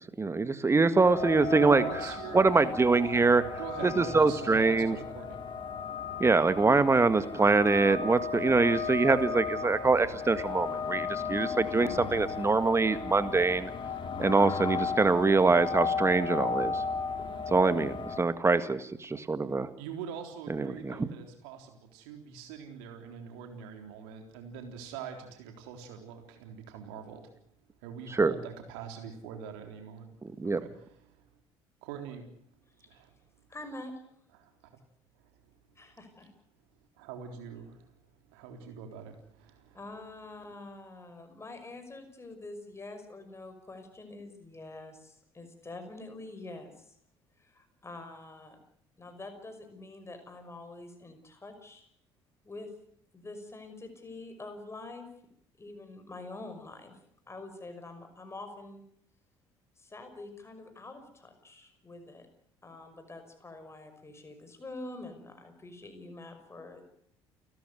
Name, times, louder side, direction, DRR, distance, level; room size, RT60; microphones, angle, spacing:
voice 1, 0.2-1.8 2.3-3.4 3.8-5.0 6.2-13.7 14.2-16.8 17.5-19.7 20.5-21.1 28.2-28.3 30.4-30.6, right 3 dB, 20° right, 13 dB, 1.8 m, -24 dB
sound 1, 1.0-18.2, left 5 dB, 35° left, 3.3 m, -35 dB
voice 2, 1.6-2.4 3.4-5.4 19.8-27.3 27.8-30.1 30.4-31.3 31.8-32.3 32.9-33.1 34.3-34.7 35.2-35.4 37.0-37.9 38.3-39.8, right 7 dB, 65° right, 5 dB, 3.7 m, -43 dB
voice 3, 33.5-33.9 35.8-36.3 39.7-46.9 47.4-48.6 49.0-51.9 52.4-52.7 53.1-55.1 55.6-57.0 57.3-58.8 59.8-62.3 62.6-66.8, left 2 dB, 20° left, 7 dB, 5.8 m, -46 dB
29.5 x 13.5 x 9.5 m, 0.70 s
figure-of-eight pair, 55°, 14 cm